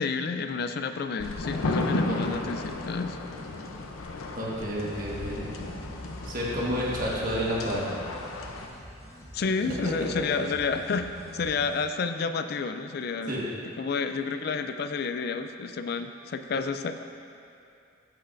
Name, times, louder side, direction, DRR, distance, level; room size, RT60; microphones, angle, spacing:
voice 1, 0.0-3.2 9.3-13.5 13.8-17.1, left 4 dB, 50° left, 8 dB, 0.3 m, -30 dB
sound 1, 1.2-8.7, left 2 dB, 90° left, 0.6 m, -34 dB
voice 2, 2.1-2.4 4.3-5.5 6.2-7.9 9.8-10.4 13.3-13.4, equal, 40° right, -5 dB, 1.4 m, -30 dB
sound 2, 4.9-11.8, equal, 15° left, 0.7 m, -44 dB
14.0 x 5.5 x 2.5 m, 2.6 s
head